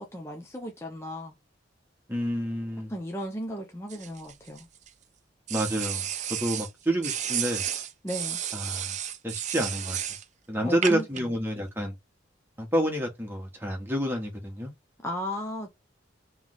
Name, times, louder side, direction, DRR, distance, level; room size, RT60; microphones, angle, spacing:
voice 1, 0.0-1.3 2.9-4.7 8.0-8.4 10.6-11.1 15.0-15.7, equal, 15° left, 0.7 m, -35 dB
voice 2, 2.1-2.9 5.5-7.6 8.5-9.0 9.2-10.0 10.5-11.9 12.6-14.7, equal, 10° right, 1.3 m, -29 dB
sound 1, 3.9-4.9 5.5-6.7 7.0-10.2 10.8-11.2, right 10 dB, 40° right, 0.4 m, -32 dB
3.4 x 3.2 x 3.7 m
head